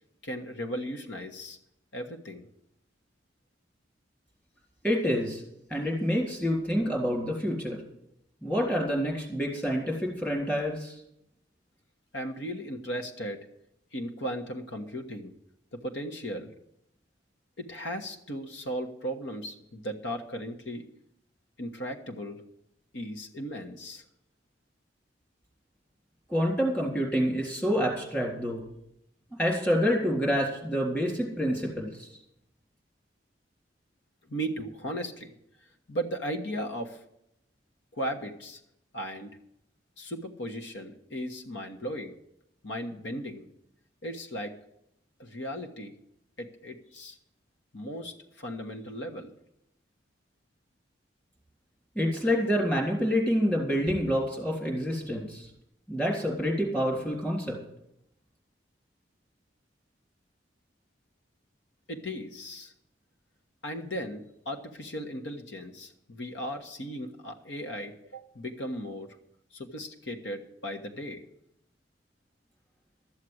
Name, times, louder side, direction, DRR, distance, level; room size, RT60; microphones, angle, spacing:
voice 1, 0.2-1.6 1.9-2.5 12.1-13.5 13.9-15.3 15.7-16.5 17.6-20.8 21.6-22.4 22.9-24.0 34.3-35.3 35.9-37.0 37.9-38.6 38.9-39.4 40.0-42.1 42.6-43.5 44.0-44.5 45.2-45.9 46.4-47.2 47.7-49.3 61.9-62.7 63.6-69.1 69.5-71.2, equal, 80° left, 4 dB, 1.4 m, -36 dB
voice 2, 4.8-5.4 5.7-7.8 8.4-10.9 26.3-28.6 29.4-32.1 52.0-55.5 55.9-57.6, equal, 10° left, -1 dB, 3.5 m, -27 dB
13.5 x 7.5 x 7.9 m, 0.77 s
head